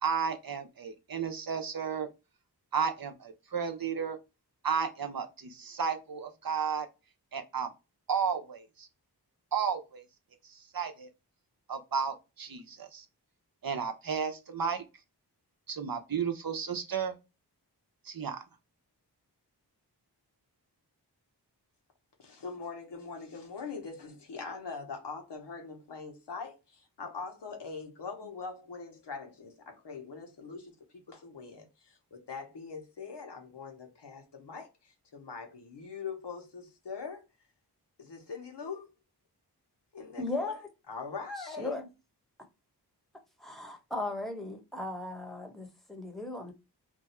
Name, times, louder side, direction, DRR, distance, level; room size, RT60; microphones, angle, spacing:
voice 1, 0.0-2.1 2.7-4.2 4.6-6.9 7.3-7.7 8.1-8.9 9.5-10.0 10.4-11.1 11.7-13.0 13.6-14.8 15.7-17.1 18.0-18.4, right 6 dB, 60° right, 0.7 m, -33 dB
voice 2, 22.2-37.3 38.0-38.9 39.9-40.6 40.9-41.8, left 5 dB, 85° left, 1.0 m, -42 dB
voice 3, 40.2-40.7 41.4-41.9 43.4-46.5, left 2 dB, ahead, 0.9 m, -37 dB
2.7 x 2.3 x 4.1 m
wide cardioid pair, 65°, 40 cm